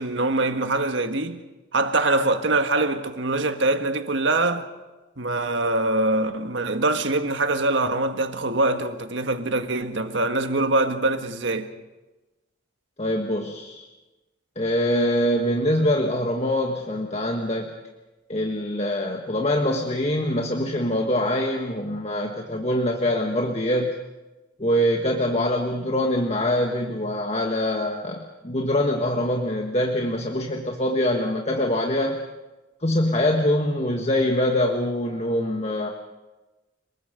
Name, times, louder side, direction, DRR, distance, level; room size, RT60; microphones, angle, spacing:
voice 1, 0.0-1.4 1.7-4.7 5.2-11.7, right 2 dB, 70° right, 1.6 m, -23 dB
voice 2, 13.0-13.8 14.5-17.7 18.3-23.9 24.6-32.2 32.8-35.9, left 1 dB, 35° left, 1.5 m, -24 dB
29.5 x 20.5 x 5.2 m
head